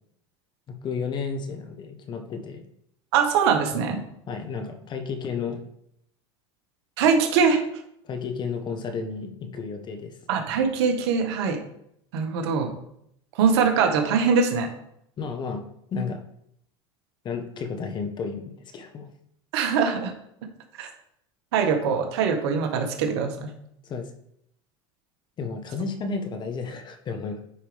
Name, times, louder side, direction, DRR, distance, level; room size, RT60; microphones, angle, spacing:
voice 1, 0.7-2.6 3.8-5.6 8.0-10.1 15.2-15.6 15.9-16.2 17.2-19.1 23.8-24.1 25.4-27.4, left 5 dB, 35° left, 6 dB, 1.2 m, -32 dB
voice 2, 3.1-4.0 7.0-7.6 10.3-11.6 12.1-12.7 13.4-14.7 19.5-20.1 20.8-20.9 21.5-23.5, right 6 dB, 80° right, 3 dB, 1.7 m, -22 dB
9.7 x 5.3 x 3.5 m, 0.74 s
supercardioid pair, 120°, 13 cm